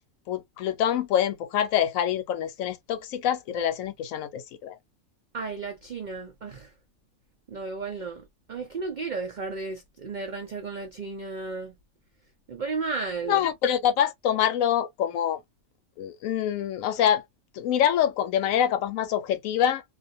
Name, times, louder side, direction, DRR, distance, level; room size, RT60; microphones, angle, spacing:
voice 1, 0.3-4.8 13.2-15.4 16.0-17.2 17.5-19.8, left 10 dB, 80° left, 1.0 m, -25 dB
voice 2, 5.3-6.7 7.5-11.7 12.5-13.5, right 4 dB, 70° right, 0.4 m, -34 dB
2.4 x 2.3 x 2.5 m
omnidirectional pair, 1.4 m